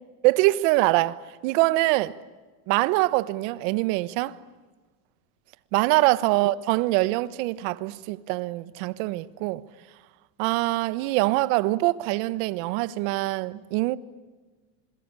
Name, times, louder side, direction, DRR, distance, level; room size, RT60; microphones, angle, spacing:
voice 1, 0.2-1.2 1.4-2.2 2.7-4.4 5.7-9.6 10.4-14.0, right 19 dB, 55° right, 1.3 m, -24 dB
27.0 x 22.5 x 9.8 m
supercardioid pair, 140°, 47 cm